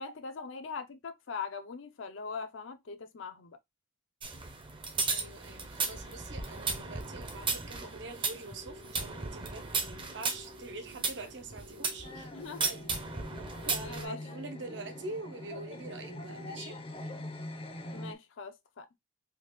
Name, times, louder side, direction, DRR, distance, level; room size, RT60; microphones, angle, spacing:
voice 1, 0.0-3.6 12.3-12.7 13.6-14.2 17.9-18.9, left 5 dB, 80° left, 0.6 m, -41 dB
sound 1, 4.2-12.1 12.6-14.0, right 4 dB, 25° right, 0.5 m, -35 dB
sound 2, 5.0-16.8, equal, 85° right, 1.1 m, -53 dB
voice 2, 5.1-12.3 12.7-12.8 13.7-16.8, right 2 dB, 65° right, 0.7 m, -44 dB
sound 3, 12.0-18.1, left 1 dB, 30° left, 0.5 m, -43 dB
3.5 x 2.4 x 3.0 m
head